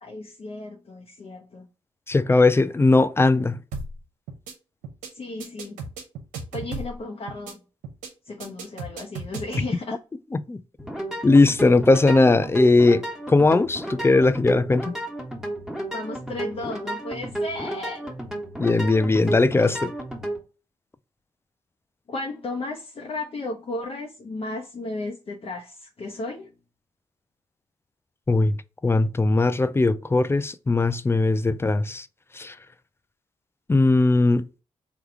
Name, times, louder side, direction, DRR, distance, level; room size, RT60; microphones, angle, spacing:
voice 1, 0.0-1.7 5.1-5.8 6.5-7.6 8.2-10.0 15.9-18.1 22.1-26.5, left 2 dB, 45° left, 0.8 m, -34 dB
voice 2, 2.1-3.6 10.5-10.6 11.2-14.9 18.6-19.9 28.3-28.6 28.8-32.1 32.4-32.5 33.7-34.4, left 3 dB, 20° left, 0.4 m, -19 dB
sound 1, 3.7-4.0 4.3-4.5 4.8-5.1 5.4-7.0 7.3-7.5 7.8-8.1 8.4-9.7, right 3 dB, 90° right, 0.7 m, -35 dB
sound 2, 10.8-20.4, right 1 dB, 5° right, 1.4 m, -32 dB
3.4 x 2.3 x 3.4 m
supercardioid pair, 50°, 13 cm